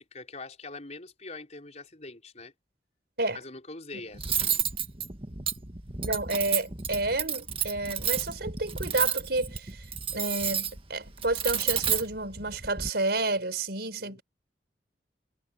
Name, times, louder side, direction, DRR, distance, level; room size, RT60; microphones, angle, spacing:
voice 1, 0.0-2.5 3.3-4.6 14.0-14.2, left 3 dB, 40° left, 4.6 m, -43 dB
Cutlery silverware, 4.2-12.9, right 8 dB, 30° right, 1.7 m, -31 dB
voice 2, 6.0-9.8 10.1-14.2, right 2 dB, 65° right, 5.3 m, -30 dB
head